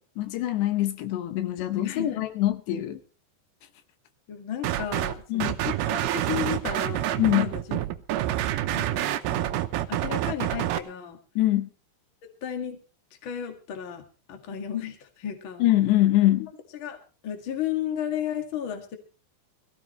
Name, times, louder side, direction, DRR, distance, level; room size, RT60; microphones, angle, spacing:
voice 1, 0.0-3.0 5.3-5.6 7.2-7.5 11.4-11.7 15.6-16.5, left 14 dB, 75° left, 10 dB, 2.9 m, -24 dB
voice 2, 1.6-2.3 4.3-7.8 8.7-11.2 12.4-12.8 13.2-15.6 16.4-17.0 17.2-19.0, left 10 dB, 50° left, 4 dB, 1.6 m, -34 dB
sound 1, 4.6-5.1 5.4-10.8, right 13 dB, 75° right, 2.4 m, -27 dB
21.0 x 15.5 x 3.2 m, 0.35 s
omnidirectional pair, 5.3 m